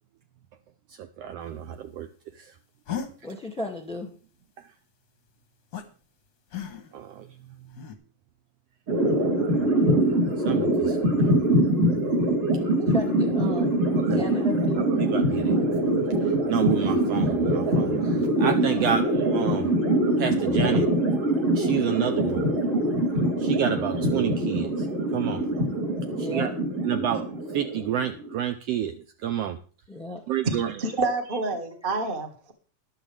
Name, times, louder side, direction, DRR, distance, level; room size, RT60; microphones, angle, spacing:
voice 1, 0.9-2.1 2.4-2.5 4.6-4.7 6.9-7.3 10.4-11.0 14.0-14.2 14.8-15.6 16.2-19.9 20.2-20.9 21.5-22.4 23.4-24.9 25.1-25.5 26.2-26.5 26.8-29.6 30.3-30.7, right 10 dB, 75° right, 8 dB, 1.5 m, -29 dB
sound 1, 2.9-3.1 5.7-5.8 6.5-7.0 7.7-8.0, left 8 dB, 50° left, 1.2 m, -34 dB
voice 2, 3.2-4.1 12.9-13.7 14.1-14.9 18.7-19.0 26.1-26.5 29.9-30.2, left 1 dB, 5° left, 4 dB, 1.5 m, -34 dB
Magic Bubbles, 8.9-28.4, right 1 dB, 50° right, 4.8 m, -24 dB
voice 3, 30.4-32.5, right 3 dB, 30° right, 4 dB, 1.0 m, -28 dB
13.5 x 11.0 x 3.4 m, 0.40 s
omnidirectional pair, 3.3 m